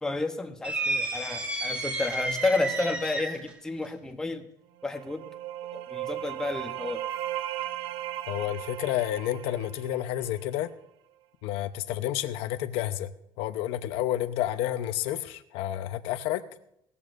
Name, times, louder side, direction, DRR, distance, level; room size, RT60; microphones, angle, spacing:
voice 1, 0.0-4.5 4.8-5.2 5.7-7.0, left 2 dB, 5° left, 4 dB, 0.9 m, -31 dB
sound 1, 0.6-3.5, right 2 dB, 10° right, 1.4 m, -31 dB
sound 2, 4.8-10.5, right 12 dB, 60° right, 0.6 m, -36 dB
voice 2, 8.3-10.7 11.4-13.1 13.4-16.4, left 13 dB, 70° left, 10 dB, 0.9 m, -30 dB
18.5 x 14.0 x 2.6 m, 0.74 s
cardioid pair, 175°, 10 cm